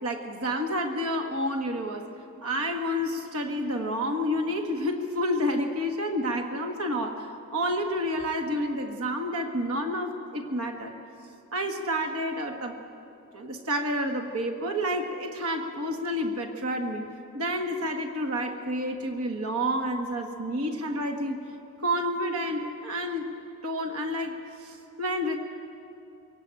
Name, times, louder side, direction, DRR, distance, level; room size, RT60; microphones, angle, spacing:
voice 1, 0.0-2.1 2.4-10.9 11.5-12.8 13.3-17.1 17.3-21.4 21.8-23.3 23.6-25.3, equal, 75° right, 5 dB, 1.6 m, -29 dB
23.5 x 17.5 x 9.0 m, 2.8 s
head